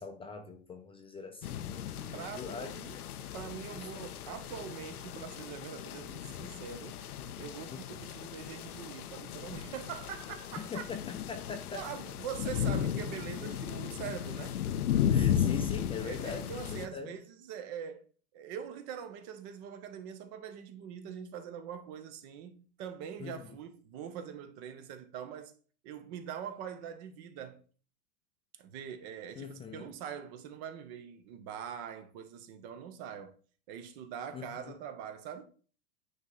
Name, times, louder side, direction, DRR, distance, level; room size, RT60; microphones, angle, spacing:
voice 1, 0.0-2.9 3.8-3.9 7.7-8.1 10.6-11.8 15.1-17.1 23.2-23.4 29.4-29.9 34.3-34.7, left 5 dB, 15° left, 0.6 m, -42 dB
sound 1, 1.4-16.9, left 9 dB, 90° left, 0.7 m, -35 dB
voice 2, 2.1-7.0 7.4-10.8 11.7-14.6 16.0-18.1 18.3-25.5 25.8-27.6 28.6-33.3 33.7-35.5, right 8 dB, 45° right, 1.2 m, -43 dB
9.3 x 3.2 x 4.0 m
hypercardioid pair, 120°, 44 cm